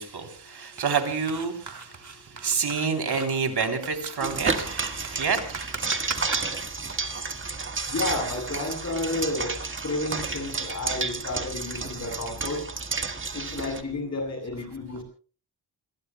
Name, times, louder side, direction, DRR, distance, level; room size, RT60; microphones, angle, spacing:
voice 1, 0.0-5.9, right 5 dB, 80° right, 4 dB, 3.4 m, -29 dB
sound 1, 0.8-6.9, right 5 dB, 50° right, 3.3 m, -38 dB
sound 2, 4.2-13.8, right 4 dB, 30° right, 1.6 m, -31 dB
voice 2, 7.9-9.6 9.8-12.7 13.3-15.0, left 2 dB, 40° left, 3 dB, 7.9 m, -31 dB
28.5 x 22.5 x 2.3 m, 0.40 s
wide cardioid pair, 160°, 39 cm